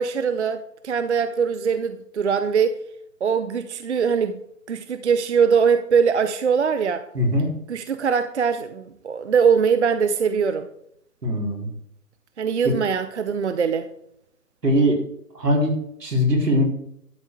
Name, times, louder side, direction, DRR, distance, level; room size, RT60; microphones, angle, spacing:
voice 1, 0.0-2.8 3.2-4.4 4.7-7.0 7.7-10.7 12.4-13.9, right 6 dB, 45° right, 0.6 m, -22 dB
voice 2, 7.1-7.5 11.2-11.7 14.6-15.1 15.3-16.6, equal, 75° right, 4.2 m, -21 dB
12.0 x 7.1 x 4.8 m
figure-of-eight pair, 145°, 48 cm